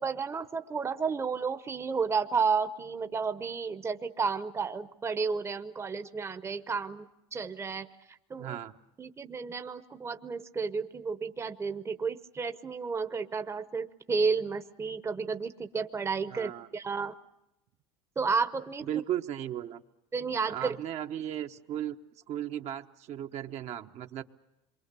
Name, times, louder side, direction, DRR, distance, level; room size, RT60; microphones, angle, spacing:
voice 1, 0.0-7.1 7.3-8.6 9.0-17.1 18.2-18.9 20.1-20.8, right 5 dB, 20° right, 10 dB, 0.9 m, -32 dB
voice 2, 8.4-8.7 16.3-16.7 18.8-19.8 20.5-22.0 22.3-24.2, right 11 dB, 55° right, 6 dB, 1.0 m, -36 dB
27.0 x 23.5 x 6.8 m, 0.89 s
supercardioid pair, 100°, 14 cm